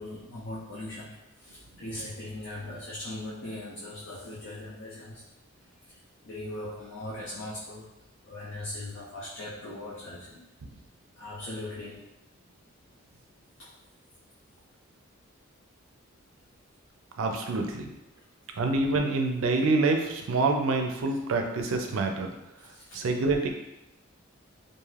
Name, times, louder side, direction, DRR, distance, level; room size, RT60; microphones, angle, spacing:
voice 1, 0.0-5.2 5.9-6.0 6.2-7.9 8.3-10.5 11.2-12.1 13.6-13.7 21.1-21.2 22.6-23.0, left 1 dB, 60° left, -5 dB, 0.5 m, -40 dB
voice 2, 17.2-17.9 18.6-22.3 22.9-23.5, right 3 dB, 80° right, 4 dB, 0.4 m, -26 dB
2.5 x 2.4 x 3.2 m, 0.96 s
head